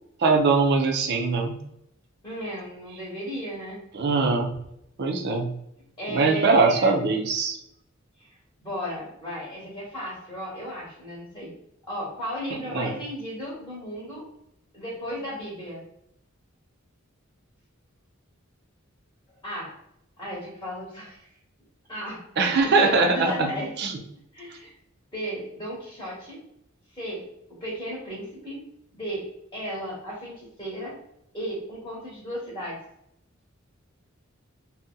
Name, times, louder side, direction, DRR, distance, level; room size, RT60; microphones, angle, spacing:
voice 1, 0.2-1.6 3.9-4.5 5.0-5.5 6.1-7.6 12.7-12.9 22.4-23.5 23.8-24.0, right 4 dB, 55° right, 3 dB, 0.5 m, -22 dB
voice 2, 2.2-3.8 6.0-6.9 8.2-8.3 8.6-11.5 11.9-14.3 14.7-15.8 19.4-19.7 20.2-21.3 21.9-23.8 24.3-24.7 25.1-26.4 26.9-28.6 28.9-31.0 31.3-32.8, equal, 20° left, -5 dB, 1.0 m, -35 dB
2.7 x 2.0 x 3.6 m, 0.76 s
head